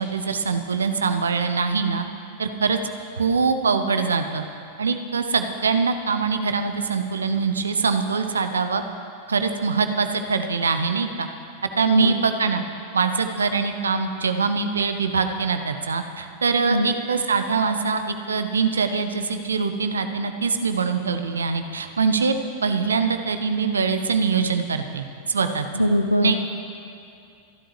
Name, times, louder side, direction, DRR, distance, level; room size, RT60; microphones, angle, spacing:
voice 1, 0.0-2.1 2.4-2.8 3.2-4.4 4.8-8.8 9.3-11.3 11.8-12.6 12.9-22.3 22.6-25.7 26.2-26.4, right 5 dB, 70° right, 8 dB, 0.9 m, -23 dB
voice 2, 11.8-12.2 16.6-16.9 25.7-26.5, left 1 dB, 90° left, 5 dB, 0.6 m, -21 dB
27.5 x 11.5 x 3.3 m, 2.4 s
figure-of-eight pair, 90°, 0 cm